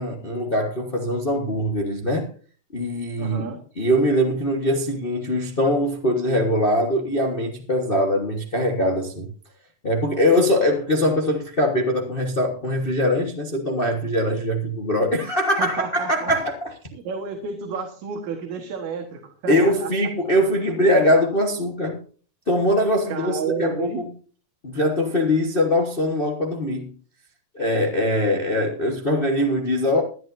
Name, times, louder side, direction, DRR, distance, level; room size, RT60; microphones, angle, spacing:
voice 1, 0.0-2.3 2.7-3.5 3.8-9.3 9.8-16.7 19.5-22.0 22.5-24.0 24.6-26.9 27.5-30.0, left 1 dB, 45° left, 0.7 m, -22 dB
voice 2, 3.2-3.6 15.6-16.3 16.9-19.9 23.1-24.1, right 6 dB, 75° right, 2.8 m, -31 dB
20.5 x 11.5 x 2.7 m
omnidirectional pair, 3.4 m